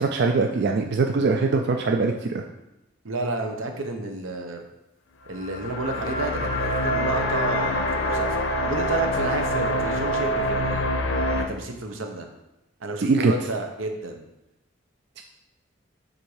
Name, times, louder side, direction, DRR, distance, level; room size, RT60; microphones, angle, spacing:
voice 1, 0.0-2.4 13.0-13.3 15.2-15.3, right 4 dB, 60° right, 3 dB, 0.4 m, -22 dB
voice 2, 3.0-4.6 5.3-8.3 8.6-10.9 11.5-12.3 12.8-14.2, right 2 dB, 85° right, 4 dB, 0.8 m, -30 dB
sound 1, 5.3-11.5, left 1 dB, 70° left, 0.6 m, -25 dB
7.3 x 2.6 x 4.8 m, 0.95 s
head